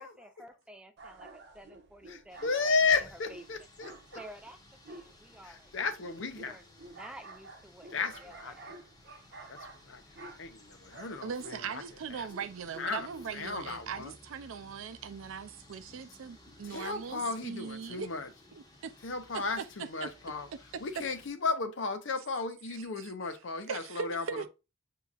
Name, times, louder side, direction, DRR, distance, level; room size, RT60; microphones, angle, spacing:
voice 1, 0.0-3.4 4.1-4.6 4.9-5.9 6.4-8.7, equal, 5° right, 0.5 m, -52 dB
sound 1, 1.0-13.6, right 2 dB, 55° right, 0.8 m, -51 dB
voice 2, 2.1-3.9 5.4-6.6 7.9-8.6 9.5-10.0 10.4-11.8 12.1-12.3 12.8-13.1 13.3-14.1 16.6-18.3 19.0-20.5 20.8-24.5, left 4 dB, 65° left, 0.6 m, -34 dB
sound 2, 2.3-21.3, left 1 dB, 20° left, 0.9 m, -58 dB
voice 3, 11.2-18.1 18.8-18.9 19.3-19.6 20.0-20.1 23.0-23.1 23.7-24.5, right 6 dB, 90° right, 0.5 m, -40 dB
7.0 x 2.8 x 2.4 m
head